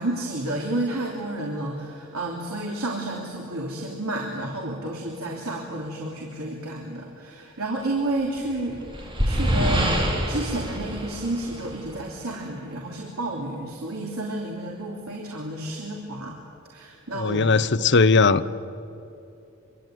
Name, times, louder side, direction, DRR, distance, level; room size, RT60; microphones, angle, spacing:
voice 1, 0.0-16.4 16.7-17.9, right 1 dB, 80° right, -1 dB, 3.3 m, -31 dB
sound 1, 8.4-12.0, equal, 25° right, 4.1 m, -26 dB
voice 2, 17.1-18.6, left 4 dB, 55° left, 13 dB, 0.9 m, -19 dB
25.5 x 25.0 x 9.3 m, 2.7 s
head